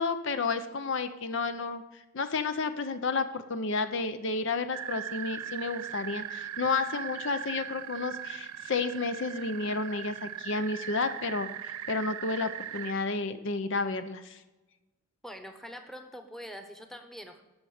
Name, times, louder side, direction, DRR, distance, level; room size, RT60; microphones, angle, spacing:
voice 1, 0.0-14.4, left 4 dB, 55° left, 10 dB, 0.6 m, -31 dB
sound 1, 4.7-12.9, right 11 dB, 85° right, 0.4 m, -39 dB
voice 2, 15.2-17.4, equal, ahead, 5 dB, 1.0 m, -44 dB
18.5 x 6.4 x 4.9 m, 1.1 s
head